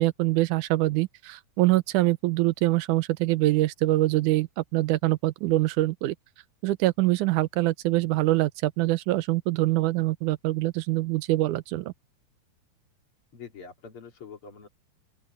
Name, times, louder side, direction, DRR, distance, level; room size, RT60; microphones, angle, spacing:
voice 1, 0.0-6.2 6.6-11.9, right 17 dB, 85° right, 2.2 m, -24 dB
voice 2, 13.3-14.7, left 6 dB, 45° left, 3.5 m, -44 dB
open air
omnidirectional pair, 3.6 m